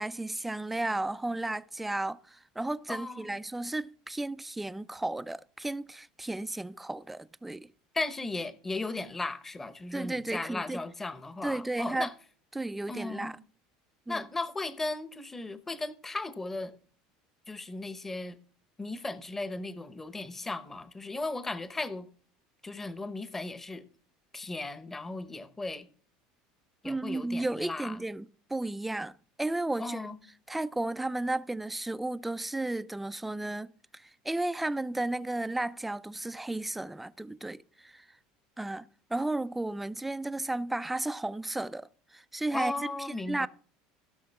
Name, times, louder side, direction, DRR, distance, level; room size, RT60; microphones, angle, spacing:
voice 1, 0.0-7.7 9.9-10.8 11.4-12.1 12.5-13.4 14.1-14.2 26.8-29.1 29.4-30.1 30.5-38.0 38.6-43.5, right 2 dB, 5° right, 0.3 m, -34 dB
voice 2, 2.9-3.4 7.9-12.1 12.9-13.3 14.1-16.7 17.5-18.4 18.8-22.1 22.6-23.8 24.3-25.9 26.8-28.0 29.8-30.2 42.5-43.5, left 2 dB, 10° left, 0.8 m, -36 dB
15.5 x 6.2 x 3.5 m
cardioid pair, 145°, 2 cm